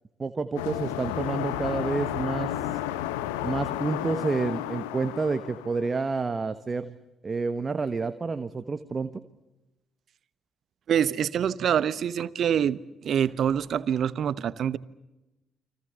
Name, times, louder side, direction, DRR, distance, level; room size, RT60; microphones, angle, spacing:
voice 1, 0.2-2.5 3.4-6.9 7.2-9.2, right 4 dB, 35° right, 1.4 m, -29 dB
sound 1, 0.6-6.1, left 12 dB, 75° left, 1.2 m, -32 dB
voice 2, 10.9-14.8, right 9 dB, 55° right, 1.0 m, -25 dB
30.0 x 24.5 x 6.9 m
figure-of-eight pair, 45°, 0 cm